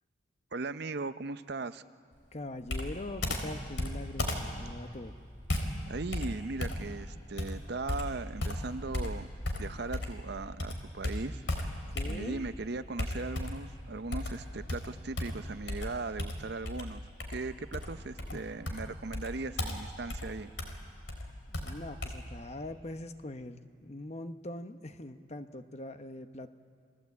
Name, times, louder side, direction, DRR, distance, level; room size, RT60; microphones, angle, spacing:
voice 1, 0.5-1.8 5.9-9.3 9.6-11.4 12.0-17.0 17.3-20.5, right 3 dB, 55° right, 12 dB, 0.6 m, -38 dB
voice 2, 2.3-4.3 4.6-5.2 11.9-12.4 18.3-18.4 21.5-26.5, left 1 dB, 35° left, 9 dB, 0.9 m, -42 dB
Computer keyboard, 2.7-10.3 10.6-12.5 13.0-13.7 14.1-22.1, left 1 dB, 70° left, 3.6 m, -36 dB
30.0 x 21.0 x 8.4 m, 2.3 s
head